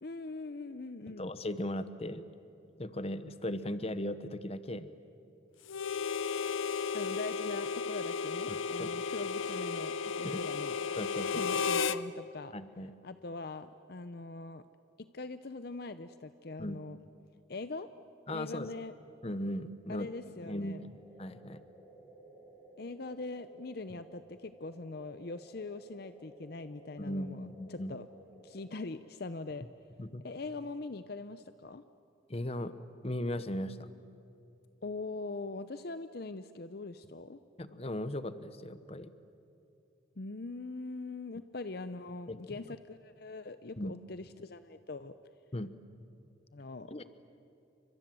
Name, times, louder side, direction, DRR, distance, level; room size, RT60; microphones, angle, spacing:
voice 1, 0.0-1.3 6.9-10.7 11.3-12.5 13.0-14.6 15.1-17.0 17.5-17.9 18.3-18.9 19.9-20.8 22.8-28.1 28.4-29.7 30.2-31.8 34.8-37.4 40.2-45.1 46.5-46.9, left 3 dB, 50° left, 12 dB, 0.7 m, -42 dB
voice 2, 1.1-2.2 2.8-4.9 8.5-8.9 10.2-10.4 11.0-11.4 12.5-12.9 16.6-16.8 18.3-18.7 19.2-20.1 20.4-21.6 27.0-28.0 30.0-30.2 32.3-32.8 33.0-33.8 37.6-39.1 42.3-42.6 43.8-43.9 45.5-45.7 46.9-47.1, left 1 dB, 30° left, 13 dB, 1.0 m, -37 dB
Harmonica, 5.7-12.0, left 5 dB, 85° left, 0.7 m, -34 dB
sound 1, 20.9-28.8, right 1 dB, 5° right, 5.1 m, -56 dB
30.0 x 25.0 x 7.7 m, 2.8 s
head